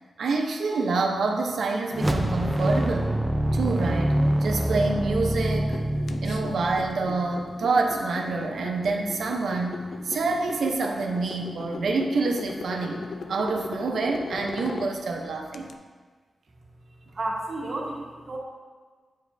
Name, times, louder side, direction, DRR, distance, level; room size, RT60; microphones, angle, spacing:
voice 1, 0.2-3.2 3.5-5.8 6.2-15.7, right 3 dB, 70° right, 2 dB, 0.7 m, -27 dB
sound 1, 1.9-7.3, right 1 dB, 10° right, 0.4 m, -25 dB
sound 2, 5.4-15.7, left 4 dB, 60° left, 0.4 m, -39 dB
voice 2, 17.2-18.4, right 2 dB, 45° right, -2 dB, 1.2 m, -31 dB
9.1 x 5.1 x 2.7 m, 1.5 s
wide cardioid pair, 165°, 0 cm